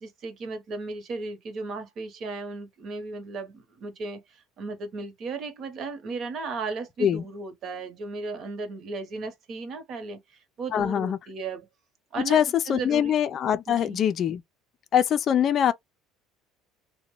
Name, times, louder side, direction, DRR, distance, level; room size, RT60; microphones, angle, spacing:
voice 1, 0.0-10.2 10.6-11.7 12.1-13.2 13.7-14.0, right 3 dB, 50° right, 1.0 m, -35 dB
voice 2, 10.7-11.2 12.3-14.4 14.9-15.7, left 9 dB, 45° left, 0.4 m, -23 dB
2.9 x 2.2 x 3.0 m
supercardioid pair, 105°, 0 cm